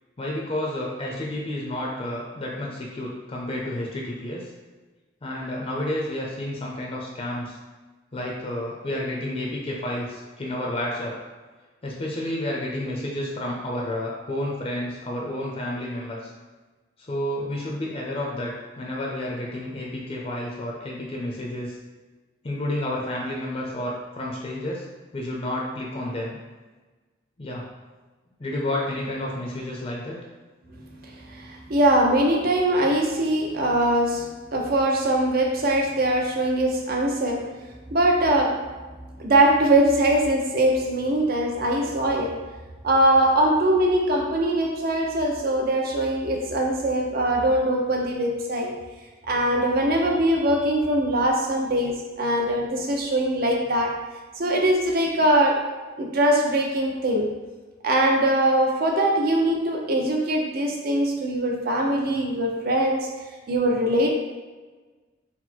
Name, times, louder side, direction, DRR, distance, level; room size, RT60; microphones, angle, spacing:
voice 1, 0.2-4.5 5.2-7.6 8.1-11.1 11.8-16.3 17.0-21.8 22.4-24.8 25.1-26.4 27.4-27.6 28.4-30.2, left 1 dB, 30° left, -3 dB, 0.6 m, -30 dB
voice 2, 30.9-37.5 37.9-38.7 39.2-42.4 42.8-48.7 49.3-54.0 54.4-55.7 56.0-57.3 57.8-63.1 63.5-64.1, right 1 dB, 50° right, 1 dB, 0.6 m, -22 dB
4.0 x 2.1 x 4.4 m, 1.3 s
head